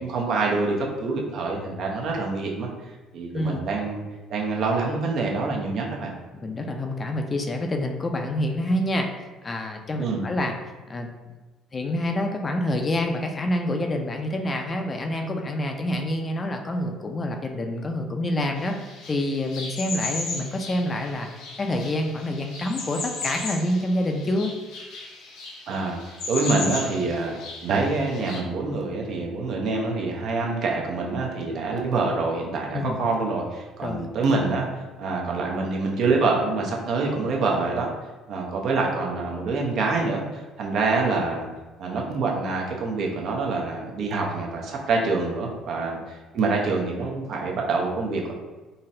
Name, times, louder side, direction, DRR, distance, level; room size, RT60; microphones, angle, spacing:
voice 1, 0.0-2.7 3.1-4.0 4.3-6.1 10.0-10.2 25.7-27.3 27.6-37.9 38.3-41.5 41.8-48.3, right 3 dB, 65° right, -1 dB, 0.6 m, -26 dB
voice 2, 6.4-9.1 9.4-10.6 10.9-11.1 11.7-18.7 19.1-21.3 21.6-24.5 32.7-33.0 33.8-34.0, left 1 dB, 30° left, 3 dB, 0.4 m, -27 dB
sound 1, 18.6-28.4, left 3 dB, 90° left, 0.7 m, -36 dB
3.9 x 2.0 x 2.6 m, 1.2 s
supercardioid pair, 85°, 0 cm